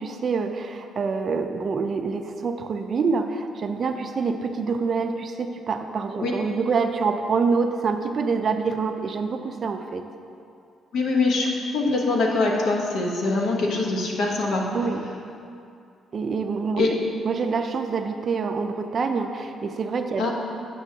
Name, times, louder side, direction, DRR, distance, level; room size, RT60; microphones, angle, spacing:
voice 1, 0.0-10.0 14.7-15.0 16.1-17.0 17.2-20.3, right 5 dB, 50° right, 6 dB, 0.4 m, -26 dB
voice 2, 10.9-14.8 16.8-17.0 20.2-20.3, left 3 dB, 70° left, 0 dB, 0.9 m, -23 dB
8.2 x 6.2 x 2.7 m, 2.5 s
cardioid pair, 90°, 0 cm